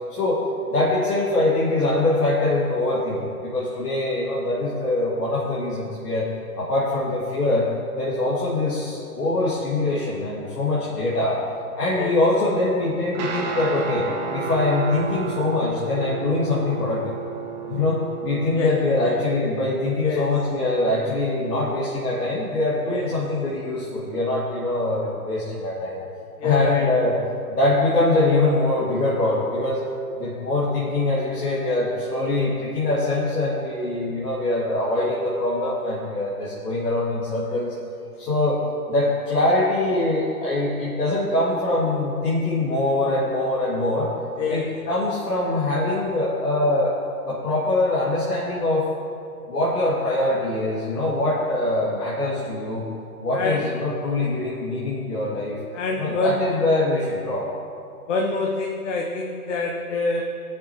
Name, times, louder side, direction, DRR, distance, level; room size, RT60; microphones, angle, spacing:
voice 1, 0.1-0.4 0.7-6.3 6.6-7.7 7.9-11.4 11.8-17.1 17.4-26.0 26.4-27.2 27.5-29.8 30.2-37.7 38.2-38.6 38.9-44.1 44.5-47.0 47.2-48.9 49.5-52.9 53.2-55.6 56.0-57.5, left 2 dB, 80° left, -7 dB, 2.2 m, -23 dB
Guitar, 13.1-24.6, right 5 dB, 30° right, 1.0 m, -34 dB
voice 2, 26.4-26.9 44.4-44.7 53.3-53.7 55.7-56.7 58.1-60.2, left 3 dB, 50° left, 0 dB, 1.0 m, -26 dB
16.5 x 6.7 x 3.0 m, 2.5 s
hypercardioid pair, 140°, 47 cm